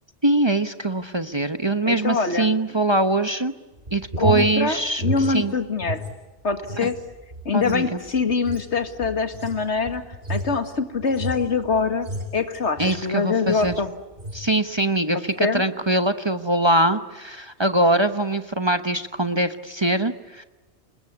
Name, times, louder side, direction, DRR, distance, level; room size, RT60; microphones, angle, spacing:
voice 1, 0.2-3.5 3.9-5.5 6.8-6.9 7.5-8.0 12.8-13.7 14.3-20.4, right 2 dB, 25° right, 9 dB, 1.0 m, -22 dB
voice 2, 1.9-2.5 4.2-6.0 6.4-7.0 7.5-10.0 10.3-12.1 12.3-13.9 15.4-15.6, left 4 dB, 75° left, 8 dB, 2.2 m, -24 dB
sound 1, 3.7-6.1 6.4-13.1 13.5-13.8 14.1-14.5, equal, 50° right, 6.2 m, -32 dB
29.0 x 20.5 x 9.7 m, 1.1 s
omnidirectional pair, 1.2 m